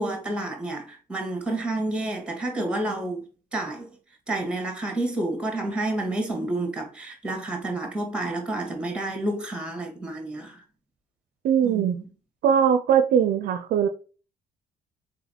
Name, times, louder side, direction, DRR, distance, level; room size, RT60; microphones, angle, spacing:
voice 1, 0.0-3.2 3.5-3.9 4.3-10.6 11.6-12.1, right 2 dB, 5° right, 1.6 m, -29 dB
voice 2, 11.4-12.0 12.4-13.9, right 8 dB, 65° right, 0.5 m, -20 dB
4.0 x 3.6 x 2.7 m
cardioid pair, 110°, 17 cm